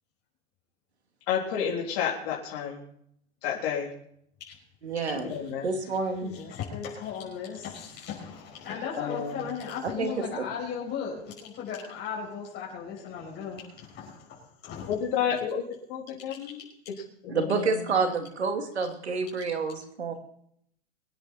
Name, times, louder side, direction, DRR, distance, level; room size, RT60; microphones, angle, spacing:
voice 1, 1.3-2.8 3.4-3.9 5.3-5.7 9.0-9.4 14.9-15.6 15.9-16.6 17.2-17.7, left 8 dB, 55° left, -1 dB, 3.3 m, -30 dB
voice 2, 4.8-5.3 5.6-6.3 10.0-10.3 17.3-20.1, right 4 dB, 90° right, 6 dB, 2.5 m, -28 dB
voice 3, 6.2-15.0 16.4-16.5, left 7 dB, 35° left, -4 dB, 5.7 m, -37 dB
22.5 x 10.0 x 4.3 m, 0.69 s
hypercardioid pair, 110°, 32 cm